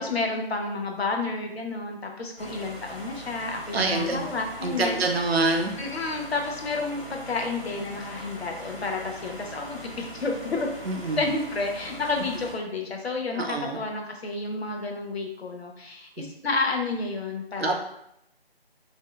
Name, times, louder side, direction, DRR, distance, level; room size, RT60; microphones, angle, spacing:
voice 1, 0.0-5.4 5.8-10.7 11.2-17.8, left 3 dB, 80° left, 2 dB, 0.6 m, -30 dB
sound 1, 2.4-12.5, right 1 dB, 35° left, 0.8 m, -41 dB
voice 2, 3.7-4.2 4.6-5.7 10.9-11.2 13.3-13.8 17.6-17.8, right 3 dB, 75° right, 3 dB, 0.5 m, -25 dB
2.6 x 2.2 x 2.2 m, 0.77 s
figure-of-eight pair, 170°, 31 cm